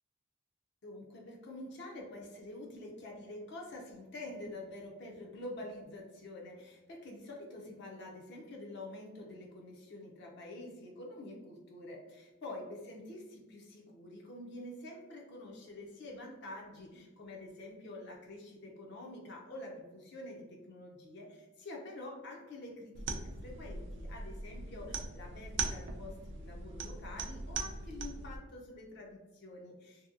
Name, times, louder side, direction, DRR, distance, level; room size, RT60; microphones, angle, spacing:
voice 1, 0.8-30.1, left 1 dB, 55° left, -1 dB, 0.5 m, -47 dB
sound 1, 22.9-28.4, right 4 dB, 60° right, 0.3 m, -40 dB
2.7 x 2.6 x 2.5 m, 1.1 s
head